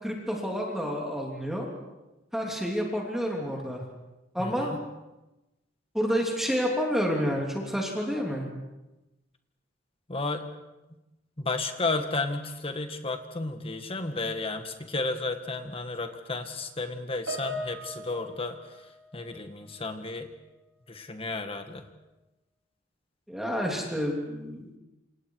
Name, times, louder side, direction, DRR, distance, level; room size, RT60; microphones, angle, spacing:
voice 1, 0.0-1.7 2.3-3.8 4.3-4.7 5.9-8.5 23.3-24.8, equal, ahead, -1 dB, 3.2 m, -29 dB
voice 2, 4.4-4.8 10.1-10.4 11.4-18.6 19.1-20.3 20.9-21.8, left 3 dB, 30° left, 7 dB, 1.9 m, -32 dB
Piano, 17.3-19.9 20.2-20.5 21.3-21.4, equal, 70° right, 6.7 m, -40 dB
28.0 x 27.5 x 4.9 m, 1.0 s
head